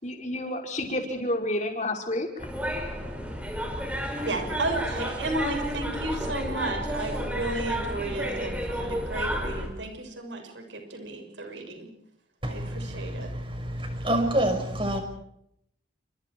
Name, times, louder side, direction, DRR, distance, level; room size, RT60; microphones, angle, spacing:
voice 1, 0.0-2.5, left 1 dB, 40° left, 5.2 m, -30 dB
sound 1, 2.4-9.7, equal, 5° right, 5.7 m, -31 dB
voice 2, 4.2-11.9 12.5-13.3, right 2 dB, 75° right, 6.5 m, -33 dB
voice 3, 13.8-15.0, right 1 dB, 25° right, 5.6 m, -25 dB
30.0 x 27.0 x 4.7 m
head